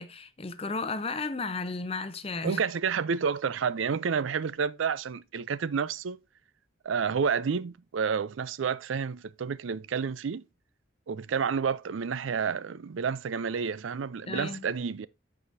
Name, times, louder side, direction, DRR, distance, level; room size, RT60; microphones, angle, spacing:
voice 1, 0.0-2.6 14.3-14.7, left 3 dB, 30° left, 0.7 m, -34 dB
voice 2, 2.4-6.2 6.8-10.4 11.1-15.1, right 6 dB, 85° right, 0.4 m, -30 dB
14.0 x 4.9 x 2.7 m
head